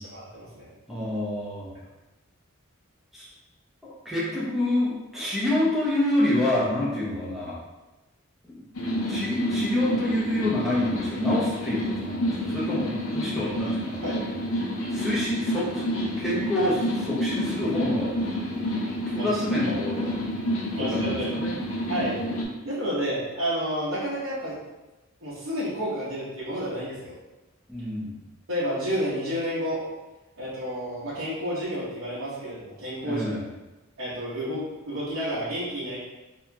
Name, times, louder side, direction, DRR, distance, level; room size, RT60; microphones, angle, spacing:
voice 1, 0.0-0.7 14.0-14.2 19.1-19.6 20.7-21.3 21.9-22.2 22.6-24.6 25.2-27.1 28.5-29.8 30.4-33.2 34.0-36.0, equal, 70° right, -11 dB, 1.1 m, -30 dB
voice 2, 0.9-1.7 3.1-3.3 3.8-7.6 8.4-8.6 8.9-14.0 14.9-15.8 16.2-18.1 19.1-20.2 20.7-21.5 27.7-28.2 33.0-33.4, left 1 dB, ahead, -7 dB, 0.8 m, -27 dB
sound 1, 8.7-22.4, equal, 80° left, 0.7 m, -29 dB
4.2 x 2.9 x 2.3 m, 1.1 s
head